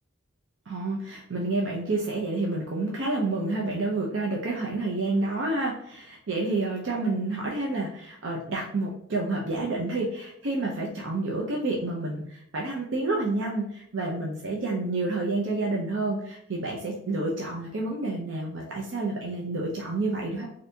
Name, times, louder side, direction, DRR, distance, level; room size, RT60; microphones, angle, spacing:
voice 1, 0.7-20.5, right 2 dB, 65° right, -2 dB, 0.5 m, -29 dB
3.3 x 2.7 x 2.7 m, 0.71 s
head